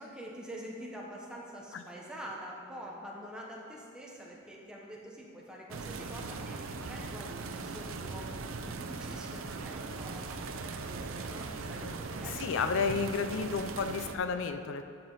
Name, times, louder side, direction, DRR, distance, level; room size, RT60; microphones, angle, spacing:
voice 1, 0.0-10.4 10.8-13.7, equal, 5° right, -3 dB, 1.1 m, -46 dB
sound 1, 5.7-14.2, right 3 dB, 80° right, 0.6 m, -39 dB
voice 2, 12.2-14.8, left 5 dB, 65° left, 9 dB, 0.4 m, -32 dB
12.0 x 5.8 x 4.1 m, 2.5 s
head